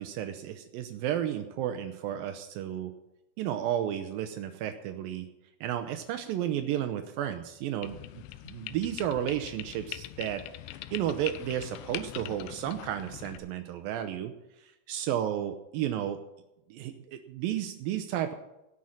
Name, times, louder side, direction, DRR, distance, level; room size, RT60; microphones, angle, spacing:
voice 1, 0.0-2.9 3.4-5.3 5.6-8.0 8.4-10.4 10.7-14.3 14.6-16.2 16.7-18.3, right 11 dB, 90° right, 7 dB, 2.0 m, -32 dB
sound 1, 7.8-13.4, left 15 dB, 85° left, 2.8 m, -42 dB
16.5 x 6.4 x 7.2 m, 0.91 s
omnidirectional pair, 5.1 m